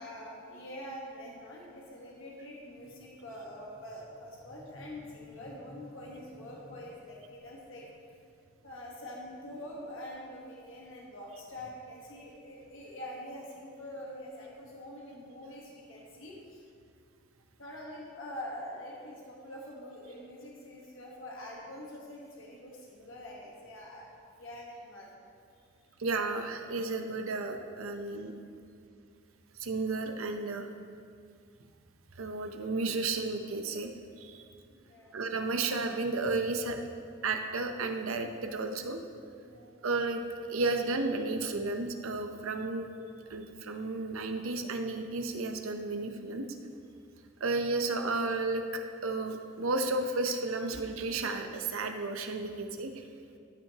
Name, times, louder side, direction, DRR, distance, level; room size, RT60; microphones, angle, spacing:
voice 1, 0.0-7.9 8.6-16.6 17.6-24.1 24.4-25.1 34.7-35.2 39.4-39.8, left 1 dB, 70° left, -3 dB, 1.3 m, -45 dB
voice 2, 26.0-28.3 29.6-30.7 32.2-33.9 34.2-34.4 35.1-36.8 37.2-39.0 39.8-40.2 40.5-42.9 43.3-46.6 47.4-53.1, right 3 dB, 85° right, 6 dB, 0.7 m, -33 dB
14.5 x 5.9 x 2.9 m, 2.3 s
head